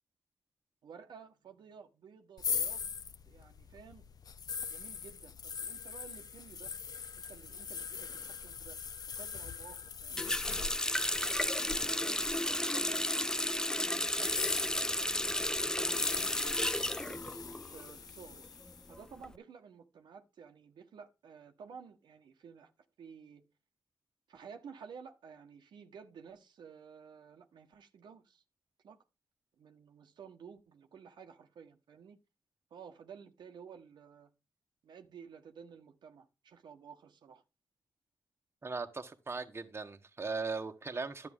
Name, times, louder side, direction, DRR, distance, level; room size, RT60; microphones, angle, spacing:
voice 1, 0.8-2.9 3.2-4.1 4.7-6.7 7.1-8.8 9.2-10.3 10.9-13.1 13.7-15.0 15.2-17.4 17.7-18.4 18.9-22.7 23.0-23.4 24.3-28.4 28.8-29.0 29.6-32.2 32.7-34.3 34.8-37.4, right 6 dB, 85° right, 1.4 m, -53 dB
sound 1, 2.4-13.3 14.1-18.9, left 6 dB, 60° left, 0.7 m, -42 dB
Water tap faucet, 10.2-17.9 18.2-19.3, left 1 dB, 10° left, 0.5 m, -33 dB
voice 2, 38.6-41.3, right 4 dB, 35° right, 1.4 m, -38 dB
11.0 x 7.6 x 3.7 m
cardioid pair, 80°, 8 cm